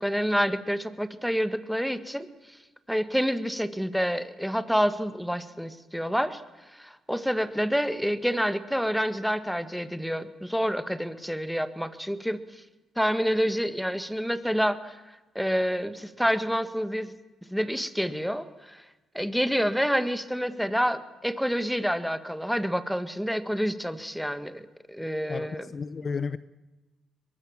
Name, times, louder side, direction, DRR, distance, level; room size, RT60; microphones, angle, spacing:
voice 1, 0.0-2.6 2.9-6.4 6.7-12.6 13.0-15.0 15.4-17.1 17.5-18.9 19.1-25.7, equal, ahead, 1.7 m, -28 dB
voice 2, 25.3-26.4, left 5 dB, 40° left, 0.7 m, -33 dB
22.5 x 21.5 x 7.4 m
cardioid pair, 90°, 0 cm